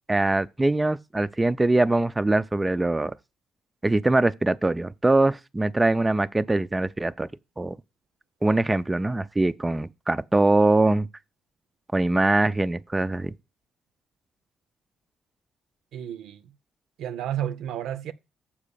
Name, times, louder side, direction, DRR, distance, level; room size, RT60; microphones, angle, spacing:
voice 1, 0.1-3.1 3.8-7.3 7.6-7.8 8.4-11.1 11.9-13.3, right 2 dB, 15° right, 0.4 m, -22 dB
voice 2, 15.9-16.5 17.0-18.1, right 11 dB, 85° right, 0.7 m, -31 dB
7.3 x 4.7 x 6.8 m
cardioid pair, 90°, 0 cm